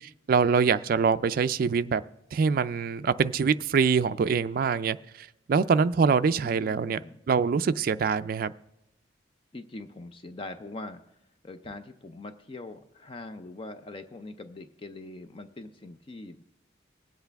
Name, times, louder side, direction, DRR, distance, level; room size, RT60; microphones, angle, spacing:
voice 1, 0.3-2.0 2.3-7.0 7.3-8.5, right 5 dB, 50° right, 0.3 m, -24 dB
voice 2, 6.4-7.2 9.5-16.4, left 2 dB, 30° left, 0.4 m, -42 dB
21.0 x 8.0 x 3.4 m
head